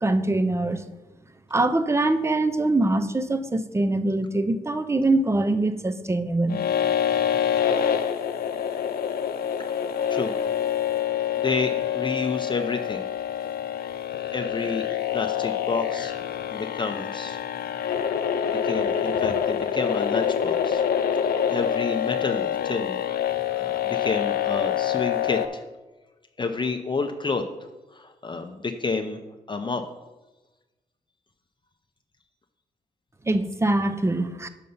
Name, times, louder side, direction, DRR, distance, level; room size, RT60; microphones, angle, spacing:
voice 1, 0.0-0.8 1.5-6.6 33.3-34.5, right 2 dB, 15° right, 11 dB, 0.6 m, -23 dB
sound 1, 6.5-25.5, left 9 dB, 80° left, 0.6 m, -26 dB
voice 2, 11.4-13.0 14.3-14.9 15.1-16.1 16.5-17.4 18.6-20.8 21.2-23.0 23.6-25.6 26.4-27.4 27.9-29.2 29.5-29.8, left 4 dB, 30° left, 5 dB, 0.6 m, -29 dB
6.6 x 5.4 x 5.5 m, 1.1 s
cardioid pair, 85°, 16 cm